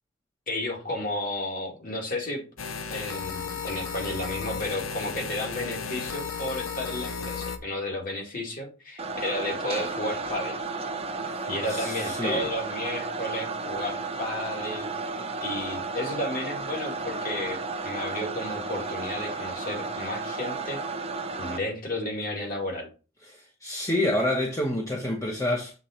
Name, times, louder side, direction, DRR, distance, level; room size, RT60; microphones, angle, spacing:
voice 1, 0.5-2.4 2.9-10.6 11.5-14.9 15.4-20.8 21.4-22.9, left 1 dB, 45° left, 2.2 m, -32 dB
sound 1, 2.6-7.6, left 5 dB, 80° left, 0.8 m, -34 dB
sound 2, 9.0-21.6, right 3 dB, 30° right, 0.7 m, -33 dB
voice 2, 11.7-12.5 23.3-25.7, left 1 dB, 15° left, 0.9 m, -28 dB
7.4 x 3.8 x 4.3 m
head